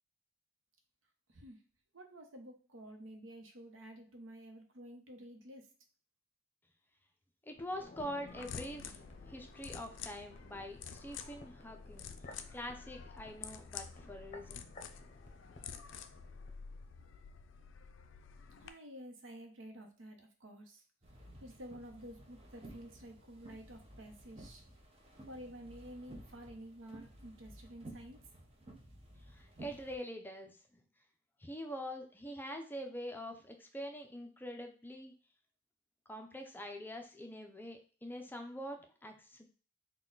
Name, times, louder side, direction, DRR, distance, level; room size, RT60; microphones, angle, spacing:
voice 1, 1.3-1.6 1.9-5.7 18.6-20.8 21.4-24.7 25.3-28.2, equal, 90° right, 4 dB, 0.8 m, -51 dB
voice 2, 7.4-9.0 9.3-12.1 12.5-14.7 29.3-30.8 31.4-35.1 36.1-39.5, equal, 10° left, 4 dB, 0.5 m, -45 dB
sound 1, 7.5-16.6 16.9-17.0, left 1 dB, 40° left, 0.7 m, -55 dB
sound 2, 8.3-18.7, left 7 dB, 70° left, 0.4 m, -49 dB
sound 3, 21.0-30.0, right 1 dB, 30° right, 0.8 m, -55 dB
4.2 x 2.3 x 3.8 m, 0.37 s
head